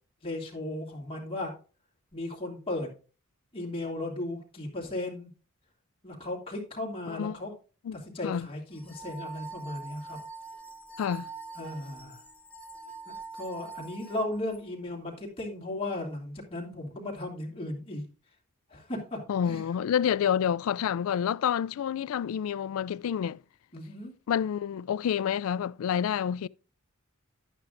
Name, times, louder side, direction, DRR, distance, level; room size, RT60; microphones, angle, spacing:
voice 1, 0.2-1.6 2.1-2.9 3.5-5.3 6.0-7.5 7.9-10.2 11.5-12.2 13.1-18.0 18.7-19.6 23.7-24.1, left 1 dB, 25° left, 2.5 m, -36 dB
sound 1, 8.7-14.6, right 4 dB, 5° left, 1.0 m, -44 dB
voice 2, 11.0-11.3 19.3-23.4 24.3-26.5, left 8 dB, 70° left, 0.3 m, -28 dB
11.0 x 8.9 x 2.5 m
head